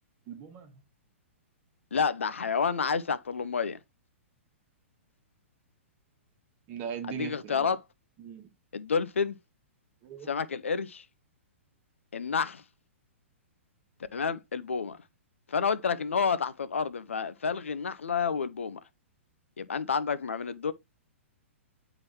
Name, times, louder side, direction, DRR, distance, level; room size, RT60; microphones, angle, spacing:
voice 1, 0.3-0.7 6.7-7.8 8.2-8.5 10.0-10.3, right 8 dB, 30° right, 1.3 m, -39 dB
voice 2, 1.9-3.8 7.0-7.8 8.7-9.4 10.3-11.0 12.1-12.6 14.1-15.0 15.5-18.8 19.6-20.7, left 6 dB, 70° left, 0.6 m, -29 dB
9.5 x 3.9 x 2.8 m
figure-of-eight pair, 110°, 7 cm